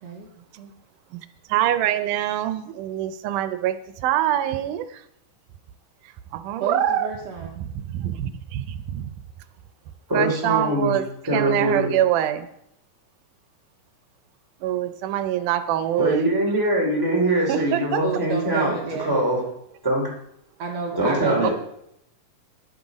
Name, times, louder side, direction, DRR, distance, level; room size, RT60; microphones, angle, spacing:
voice 1, 0.0-0.3 0.6-0.7 6.6-7.5 18.0-19.2 20.6-21.5, right 4 dB, 65° right, 1 dB, 2.0 m, -30 dB
voice 2, 1.1-5.0 6.3-7.1 7.6-9.1 10.1-12.5 14.6-16.3 17.5-18.2 21.4-21.5, right 11 dB, 90° right, 11 dB, 2.2 m, -25 dB
voice 3, 10.1-11.0 11.3-11.9 16.0-18.7 19.0-19.4 19.8-20.0 21.0-21.5, right 1 dB, 5° right, -2 dB, 2.6 m, -22 dB
10.5 x 8.0 x 4.9 m, 0.77 s
omnidirectional pair, 3.5 m